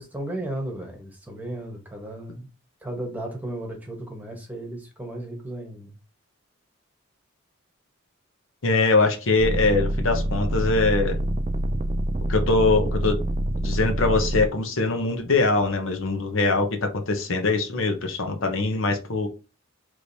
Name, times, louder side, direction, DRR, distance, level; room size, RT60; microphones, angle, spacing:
voice 1, 0.0-2.5 2.8-5.9, right 1 dB, 10° right, 1.2 m, -34 dB
voice 2, 8.6-11.2 12.3-13.2 13.6-19.3, left 3 dB, 70° left, 0.9 m, -22 dB
sound 1, 9.4-14.5 15.2-15.9, right 1 dB, 30° right, 0.4 m, -26 dB
4.9 x 3.1 x 2.7 m
head